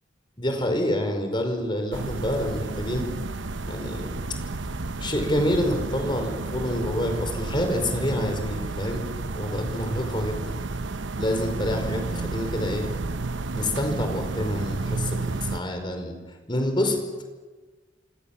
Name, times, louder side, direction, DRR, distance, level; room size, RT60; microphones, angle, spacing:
voice 1, 0.4-3.1 3.7-4.1 5.0-9.0 9.3-10.6 11.2-12.9 13.5-16.2 16.5-17.0, left 1 dB, 25° left, 5 dB, 5.0 m, -27 dB
sound 1, 1.9-15.6, right 3 dB, 80° right, 0.9 m, -31 dB
28.0 x 25.5 x 7.4 m, 1.3 s
head